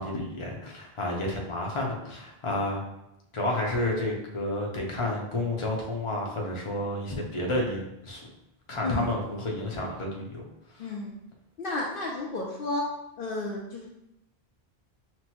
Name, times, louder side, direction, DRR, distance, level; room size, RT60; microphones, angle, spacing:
voice 1, 0.0-2.8 3.3-8.2 8.7-10.4 10.7-10.9, left 1 dB, 35° left, -1 dB, 0.7 m, -30 dB
voice 2, 10.8-11.1 11.6-12.9 13.2-13.9, left 2 dB, 65° left, -2 dB, 0.7 m, -32 dB
5.9 x 2.1 x 2.9 m, 0.85 s
omnidirectional pair, 1.0 m